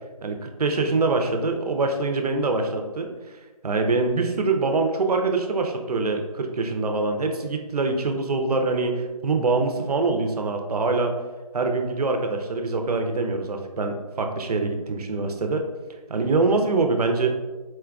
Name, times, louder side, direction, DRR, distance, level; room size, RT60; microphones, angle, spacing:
voice 1, 0.2-3.1 3.6-11.1 11.5-15.6 16.1-17.3, right 3 dB, 75° right, 4 dB, 0.5 m, -24 dB
4.2 x 2.3 x 2.3 m, 1.2 s
figure-of-eight pair, 170°, 20 cm